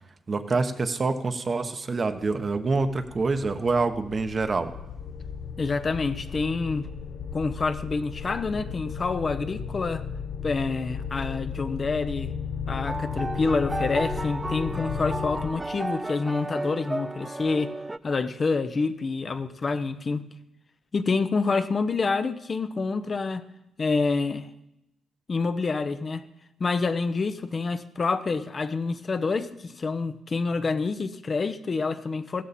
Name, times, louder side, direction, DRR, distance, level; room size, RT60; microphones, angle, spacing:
voice 1, 0.3-4.7, right 3 dB, 35° right, 1.0 m, -26 dB
sound 1, 2.1-15.5, left 6 dB, 65° left, 0.9 m, -35 dB
voice 2, 5.6-6.9 7.3-10.1 10.4-12.3 12.7-17.7 18.0-20.2 20.9-23.5 23.8-24.5 25.3-26.2 26.6-32.4, left 4 dB, 35° left, 0.7 m, -27 dB
sound 2, 12.7-18.0, right 2 dB, 15° right, 0.4 m, -33 dB
15.5 x 13.5 x 4.3 m
cardioid pair, 90°, 0 cm